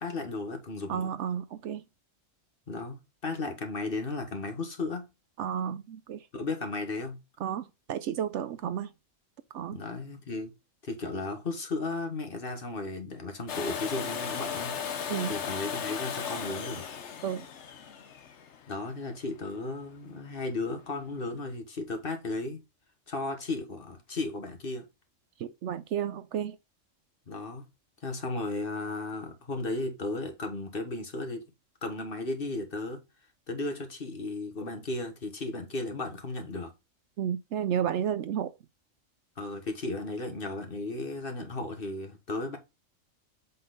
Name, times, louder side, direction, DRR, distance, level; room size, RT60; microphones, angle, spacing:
voice 1, 0.0-1.1 2.7-5.1 6.3-7.2 9.7-10.5 10.8-14.7 15.3-16.8 18.7-22.6 23.1-24.9 27.3-27.7 28.0-31.5 31.8-33.0 33.5-36.7 39.4-42.6, left 2 dB, 45° left, 1.5 m, -35 dB
voice 2, 0.9-1.8 5.4-6.2 7.4-8.9 9.5-9.8 15.1-15.4 17.2-17.4 25.4-26.6 37.2-38.5, right 9 dB, 70° right, 0.9 m, -32 dB
Domestic sounds home sounds, 13.5-19.3 21.2-21.3, left 7 dB, 65° left, 1.2 m, -36 dB
7.6 x 4.0 x 3.9 m
omnidirectional pair, 1.3 m